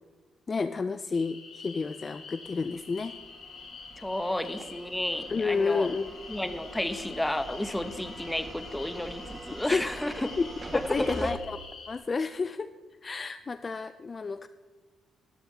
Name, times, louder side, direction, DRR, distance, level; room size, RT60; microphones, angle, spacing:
voice 1, 0.5-3.1 5.3-6.1 9.7-10.0 10.4-11.6 11.9-12.7 13.0-14.5, left 4 dB, 35° left, 12 dB, 0.3 m, -30 dB
sound 1, 1.1-12.0, left 5 dB, 55° left, 3.8 m, -46 dB
sound 2, 2.5-11.3, right 2 dB, 30° right, 1.5 m, -45 dB
voice 2, 4.0-5.9 6.3-10.3 10.7-11.4, left 1 dB, 10° left, 10 dB, 0.8 m, -32 dB
15.0 x 11.5 x 2.8 m, 1.3 s
cardioid pair, 90°, 0 cm